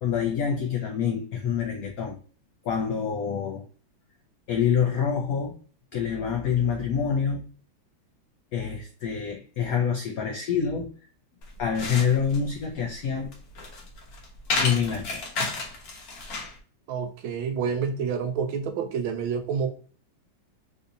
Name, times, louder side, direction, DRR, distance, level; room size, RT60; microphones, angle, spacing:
voice 1, 0.0-2.2 2.6-3.6 4.5-5.6 5.9-7.4 8.5-10.9 11.6-13.3 14.5-15.2, left 7 dB, 85° left, 0.7 m, -26 dB
sound 1, 11.4-16.6, left 3 dB, 60° left, 1.1 m, -32 dB
voice 2, 16.9-19.7, right 6 dB, 80° right, 1.4 m, -28 dB
3.8 x 2.7 x 2.6 m
omnidirectional pair, 2.2 m